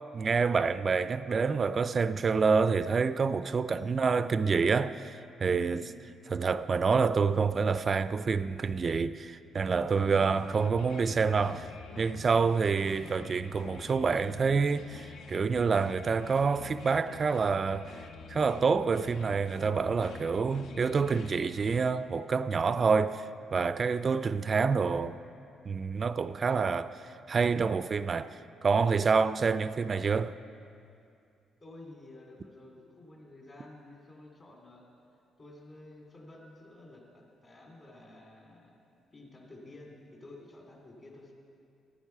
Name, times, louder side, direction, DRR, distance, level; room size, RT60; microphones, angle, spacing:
voice 1, 0.1-5.8 6.3-11.7 12.0-17.9 18.3-25.2 25.7-30.4, right 5 dB, 40° right, 0.3 m, -27 dB
voice 2, 3.7-4.0 5.6-5.9 10.0-10.3 20.4-20.8 31.6-34.9 35.4-38.7 39.1-41.3, left 2 dB, 40° left, 2.6 m, -51 dB
blackbird and or crow, 9.9-21.8, left 6 dB, 75° left, 0.5 m, -47 dB
12.5 x 9.2 x 5.6 m
cardioid pair, 90°, 0 cm